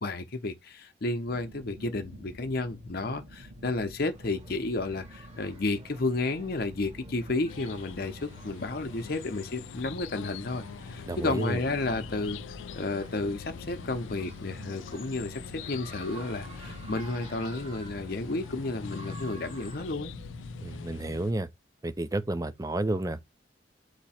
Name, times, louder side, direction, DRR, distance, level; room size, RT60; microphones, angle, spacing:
voice 1, 0.0-12.4 12.8-20.1, left 2 dB, 50° left, 0.8 m, -32 dB
sound 1, 1.3-20.8, equal, 75° right, 2.2 m, -48 dB
sound 2, 3.8-19.9, right 2 dB, 35° right, 1.2 m, -52 dB
sound 3, 7.5-21.3, left 7 dB, 75° left, 0.3 m, -44 dB
voice 2, 11.1-11.6 20.6-21.5 21.8-23.3, right 2 dB, 20° right, 0.5 m, -31 dB
8.1 x 2.9 x 4.3 m
head